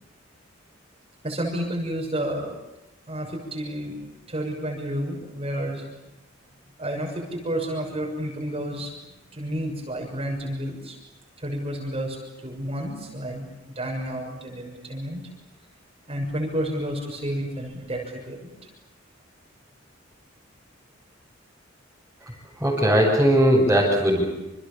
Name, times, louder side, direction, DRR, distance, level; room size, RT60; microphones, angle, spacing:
voice 1, 1.2-2.6 3.1-4.0 4.3-5.9 6.8-8.9 9.3-11.0 11.4-15.2 16.1-18.7, equal, 30° right, 0 dB, 6.8 m, -30 dB
voice 2, 22.6-24.2, equal, 10° right, -6 dB, 7.7 m, -19 dB
29.0 x 28.5 x 7.2 m, 0.95 s
head